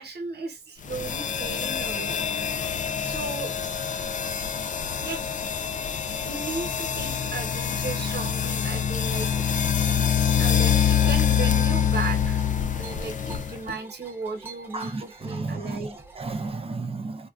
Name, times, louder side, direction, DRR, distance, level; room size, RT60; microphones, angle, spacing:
voice 1, 0.0-2.2 3.0-3.5 5.0-5.2 6.2-9.4 10.4-16.0, right 4 dB, 70° right, 1.1 m, -36 dB
sound 1, 0.8-13.7, left 8 dB, 50° left, 0.4 m, -25 dB
sound 2, 9.1-16.5, right 4 dB, 15° right, 0.9 m, -47 dB
voice 2, 14.7-17.3, right 3 dB, 35° right, 0.6 m, -33 dB
3.4 x 2.3 x 2.4 m
wide cardioid pair, 110°, 17 cm